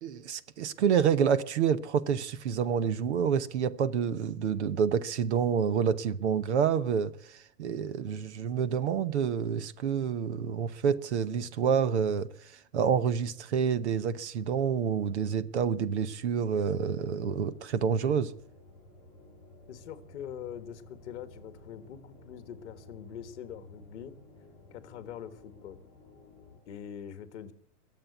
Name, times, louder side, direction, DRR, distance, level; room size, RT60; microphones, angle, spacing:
voice 1, 0.0-12.3 12.7-18.3, right 7 dB, 45° right, 0.9 m, -28 dB
sound 1, 17.1-26.6, left 2 dB, 5° left, 4.7 m, -54 dB
voice 2, 19.7-24.2 24.7-25.8 26.7-27.5, left 9 dB, 45° left, 1.6 m, -43 dB
22.0 x 7.8 x 8.1 m
supercardioid pair, 175°, 48 cm